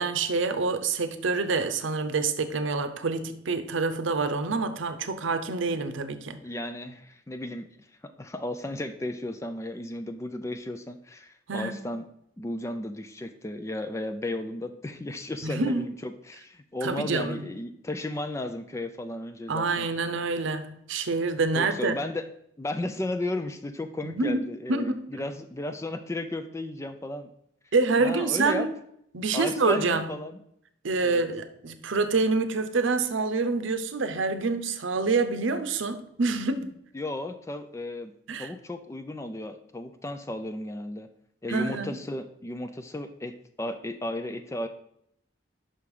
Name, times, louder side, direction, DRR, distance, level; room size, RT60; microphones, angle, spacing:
voice 1, 0.0-6.4 11.5-11.8 15.4-15.9 16.8-17.5 19.5-22.0 24.0-24.4 24.7-25.2 27.7-28.7 29.1-30.1 30.8-36.7 38.3-38.5 41.5-42.0, right 3 dB, 80° right, 9 dB, 0.7 m, -27 dB
voice 2, 6.4-7.7 8.0-12.1 12.4-19.9 21.6-22.3 22.6-27.3 28.0-28.7 29.3-30.4 31.0-31.2 36.9-38.1 38.4-41.1 41.4-44.7, left 1 dB, 15° left, 8 dB, 0.3 m, -34 dB
5.7 x 5.3 x 4.8 m, 0.73 s
head